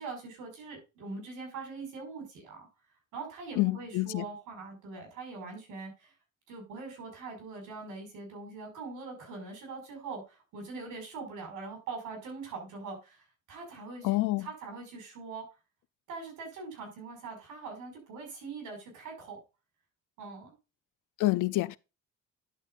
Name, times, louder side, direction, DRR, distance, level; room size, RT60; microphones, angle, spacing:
voice 1, 0.0-2.7 3.1-6.1 6.5-15.5 16.1-19.4 20.2-20.6, right 4 dB, 90° right, 5.5 m, -42 dB
voice 2, 3.6-4.3 14.0-14.5 21.2-21.8, left 18 dB, 85° left, 0.5 m, -27 dB
11.0 x 8.0 x 2.5 m
cardioid pair, 90°, 30 cm